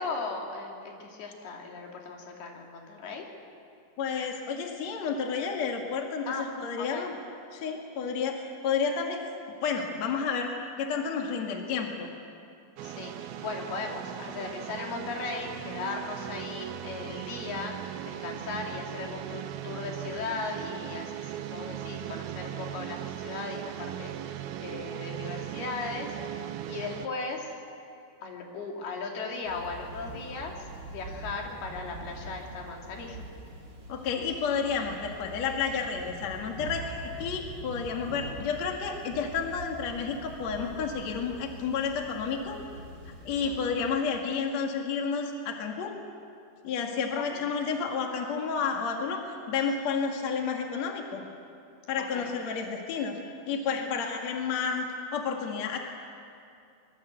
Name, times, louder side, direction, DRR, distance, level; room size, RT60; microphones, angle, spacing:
voice 1, 0.0-3.3 6.3-6.5 6.8-7.1 12.8-26.1 26.7-27.5 28.2-30.5 30.9-33.2 43.4-43.6 47.3-47.5 52.0-52.3 53.8-54.1, left 4 dB, 90° left, 0 dB, 4.7 m, -37 dB
voice 2, 4.0-6.3 6.6-7.2 7.5-8.4 8.6-9.2 9.6-10.5 10.8-12.1 33.9-42.6 43.2-45.9 46.6-51.2 51.9-53.2 53.5-54.8 55.1-55.8, left 6 dB, 50° left, 2 dB, 2.9 m, -31 dB
sound 1, 12.8-27.1, right 12 dB, 90° right, 2.7 m, -38 dB
Thunder / Rain, 29.4-43.9, right 2 dB, 65° right, 4.9 m, -44 dB
23.5 x 22.5 x 8.2 m, 2.5 s
omnidirectional pair, 4.3 m